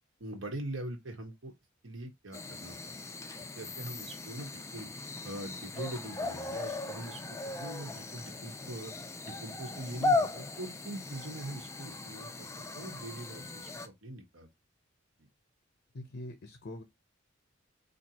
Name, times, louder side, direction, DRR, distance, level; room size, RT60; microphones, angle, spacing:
voice 1, 0.2-1.5 1.8-3.0 3.6-4.9 5.2-7.2 7.6-8.9 9.2-12.5 12.7-14.5, right 1 dB, 70° right, 1.2 m, -42 dB
sound 1, 2.3-13.9, left 3 dB, 15° left, 0.4 m, -37 dB
voice 2, 15.9-16.8, left 1 dB, 60° left, 0.7 m, -43 dB
4.3 x 2.7 x 2.9 m
head